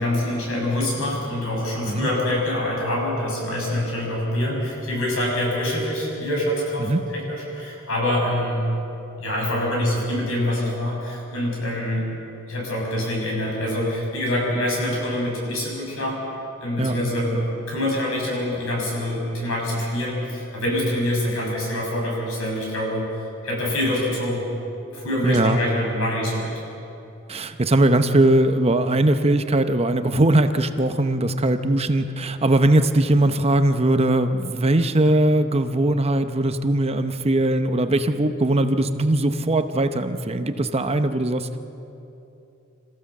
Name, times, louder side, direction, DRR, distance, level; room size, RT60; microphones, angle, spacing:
voice 1, 0.0-8.6 9.2-12.1 12.5-16.2 16.6-23.1 23.4-24.4 24.9-26.5, left 1 dB, 75° left, -2 dB, 6.8 m, -25 dB
voice 2, 25.2-25.6 27.3-41.6, right 1 dB, 30° right, 9 dB, 0.8 m, -20 dB
27.0 x 15.0 x 7.3 m, 2.9 s
head